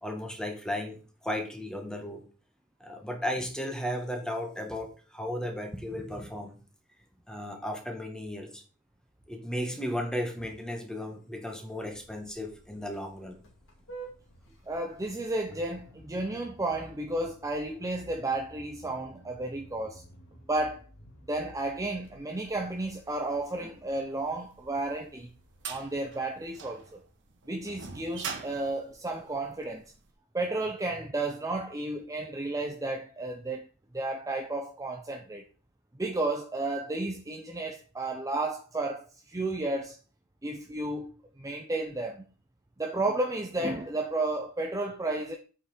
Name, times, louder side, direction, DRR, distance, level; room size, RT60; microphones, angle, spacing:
voice 1, 0.0-2.2 2.8-6.6 7.3-8.6 9.3-13.4, equal, 5° left, 1.6 m, -35 dB
Vehicle horn car horn honking, 11.7-26.9, right 2 dB, 65° left, 2.4 m, -53 dB
voice 2, 14.7-20.0 20.5-20.8 21.3-25.3 25.7-27.0 27.5-29.9 30.3-33.7 33.9-35.4 35.9-40.0 40.4-41.1 41.4-42.3 42.8-45.4, right 2 dB, 15° right, 0.7 m, -32 dB
sound 1, 24.6-29.9, right 6 dB, 55° right, 1.7 m, -42 dB
8.4 x 5.8 x 4.4 m
head